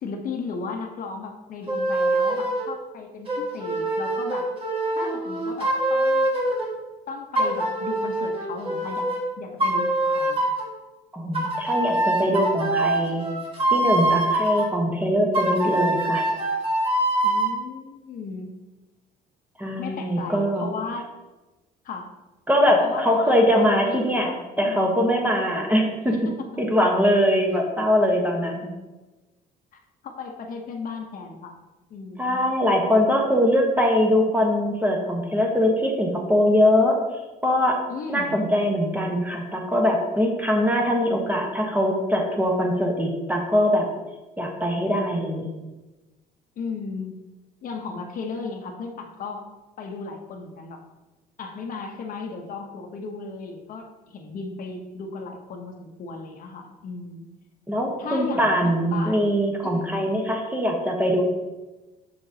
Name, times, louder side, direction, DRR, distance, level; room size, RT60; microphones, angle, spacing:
voice 1, 0.0-4.5 5.0-6.3 7.1-9.1 9.4-10.4 17.2-18.5 19.8-21.1 21.8-22.1 22.8-25.0 26.1-26.2 26.5-26.6 30.0-31.6 31.9-32.4 37.9-38.4 46.6-47.2 47.6-49.4 49.8-50.8 51.4-57.3 58.0-59.3 59.6-60.0, left 4 dB, 55° left, 3 dB, 0.9 m, -35 dB
sound 1, 1.7-2.7 3.3-6.7 7.3-9.2 9.6-10.7 11.3-14.7 15.3-17.5, right 1 dB, 35° right, 1.7 m, -24 dB
voice 2, 11.1-13.2 13.7-16.3 19.6-20.7 22.5-24.3 24.6-26.2 26.6-28.7 32.2-37.0 37.4-37.8 38.1-43.9 44.4-45.5 57.7-61.2, equal, 10° right, 0 dB, 1.1 m, -22 dB
6.6 x 5.6 x 2.8 m, 1.1 s
cardioid pair, 110°, 17 cm